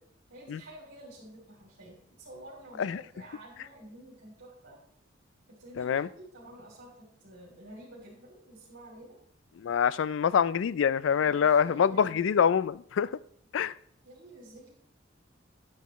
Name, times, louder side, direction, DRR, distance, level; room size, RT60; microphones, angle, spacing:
voice 1, 0.3-4.8 5.5-6.9 7.2-9.2 11.1-12.2 14.0-14.7, right 1 dB, 65° right, 3.0 m, -50 dB
voice 2, 5.8-6.1 9.6-13.1 13.5-13.8, left 7 dB, 70° left, 0.3 m, -25 dB
10.5 x 9.2 x 3.1 m
head